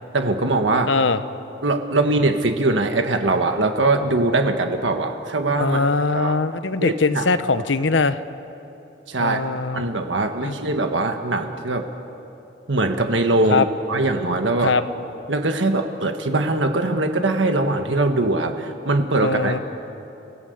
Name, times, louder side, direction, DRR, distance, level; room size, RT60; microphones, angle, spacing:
voice 1, 0.1-0.9 1.6-5.8 6.1-6.4 6.8-7.3 7.5-7.7 9.1-9.4 9.7-11.9 12.7-14.7 15.3-19.6, right 2 dB, 90° right, 5 dB, 1.6 m, -21 dB
voice 2, 0.9-1.2 5.6-8.2 9.2-9.8 10.4-10.6 13.5-13.6 14.6-14.8 19.2-19.6, left 4 dB, 90° left, 12 dB, 0.9 m, -21 dB
29.5 x 17.5 x 8.1 m, 2.9 s
head